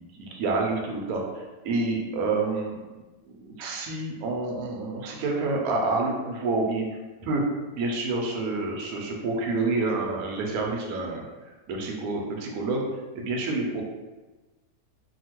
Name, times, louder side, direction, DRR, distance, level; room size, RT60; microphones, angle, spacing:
voice 1, 0.2-1.2 1.6-2.8 3.2-6.8 7.3-7.4 7.7-11.2 11.7-12.8 13.1-13.8, right 3 dB, 70° right, 0 dB, 1.0 m, -28 dB
2.8 x 2.3 x 2.9 m, 1.2 s
omnidirectional pair, 1.8 m